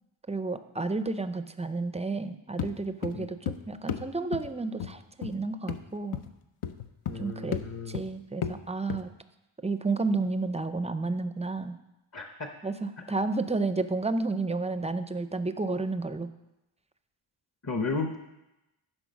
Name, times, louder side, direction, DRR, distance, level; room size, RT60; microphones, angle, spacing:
voice 1, 0.3-3.4 3.7-6.2 7.2-7.6 7.9-9.1 9.6-11.8 12.6-16.3, right 3 dB, 15° right, 10 dB, 0.4 m, -31 dB
sound 1, 2.6-2.8 3.0-3.6 3.9-4.1 4.3-4.5 4.8-4.9 5.2-5.3 5.7-5.8 6.1-6.3 6.6-7.3 7.5-7.7 7.9-8.1 8.4-8.6 8.9-9.0, left 9 dB, 80° left, 0.7 m, -33 dB
voice 2, 7.1-8.0 12.1-12.5 17.6-18.2, left 3 dB, 35° left, 5 dB, 0.7 m, -33 dB
11.0 x 5.2 x 6.3 m, 0.95 s
wide cardioid pair, 140°, 49 cm